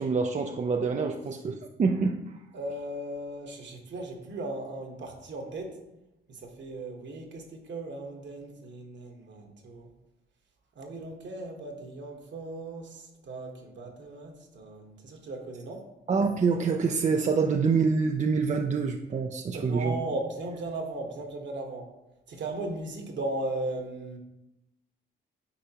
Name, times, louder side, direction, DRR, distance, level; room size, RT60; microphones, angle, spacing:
voice 1, 0.0-2.2 16.1-20.0, right 5 dB, 35° right, 4 dB, 0.5 m, -26 dB
voice 2, 2.5-5.8 6.3-9.9 10.8-15.8 19.5-21.9 22.3-24.2, right 2 dB, 65° right, 2 dB, 1.4 m, -37 dB
8.6 x 4.5 x 2.9 m, 0.91 s
cardioid pair, 80°, 20 cm